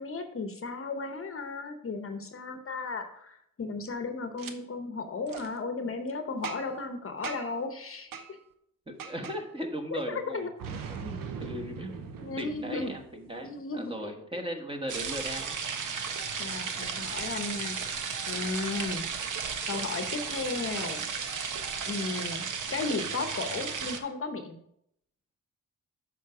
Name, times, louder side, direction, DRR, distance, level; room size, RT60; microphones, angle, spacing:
voice 1, 0.0-8.4 9.9-10.5 12.2-12.9 13.4-14.4 16.4-17.8 18.3-19.1 19.7-21.0 21.9-22.4 22.7-24.6, left 3 dB, 40° left, 7 dB, 0.9 m, -35 dB
Boom, 4.4-4.5 5.3-5.5 6.4-6.8 7.2-7.6 8.1-8.3 9.0-9.4 10.6-13.3, right 6 dB, 85° right, 0.8 m, -40 dB
voice 2, 8.9-10.5 10.9-15.6, equal, 15° right, 3 dB, 1.3 m, -38 dB
sound 1, 14.9-24.0, right 6 dB, 65° right, 1.0 m, -34 dB
7.5 x 5.3 x 4.8 m, 0.74 s
cardioid pair, 85°, 33 cm